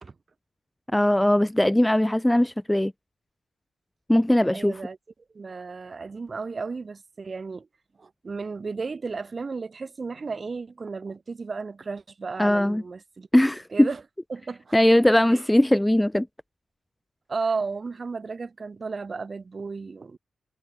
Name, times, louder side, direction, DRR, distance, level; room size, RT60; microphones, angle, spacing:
voice 1, 0.9-2.9 4.1-4.8 12.4-12.8 13.3-13.9 14.7-16.3, left 1 dB, 5° left, 0.3 m, -20 dB
voice 2, 4.5-5.0 5.3-7.7 8.0-13.3 13.7-14.0 14.3-14.8 15.3-15.4 17.3-20.2, right 4 dB, 40° right, 1.4 m, -34 dB
wide cardioid pair, 120°, 0 cm